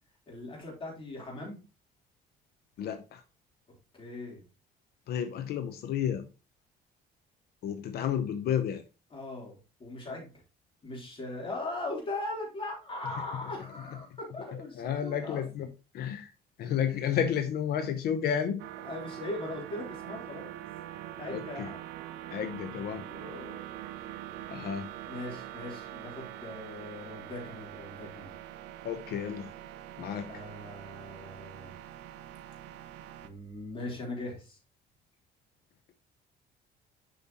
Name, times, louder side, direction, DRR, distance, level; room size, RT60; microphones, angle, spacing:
voice 1, 0.3-1.6 4.0-4.4 9.1-10.3 10.8-15.5 18.8-20.5 21.2-21.8 23.0-23.6 25.1-28.3 30.3-31.7 33.2-34.6, left 2 dB, 30° left, 3.6 m, -40 dB
voice 2, 2.8-3.2 5.1-6.3 7.6-8.8 14.7-15.7 15.9-16.3 16.6-18.6 21.3-21.7 22.3-23.0 24.5-24.9 28.8-29.5 30.0-30.3, left 8 dB, 70° left, 0.8 m, -31 dB
sound 1, 18.6-33.3, right 13 dB, 85° right, 0.7 m, -44 dB
7.2 x 5.5 x 2.9 m
cardioid pair, 110°, 17 cm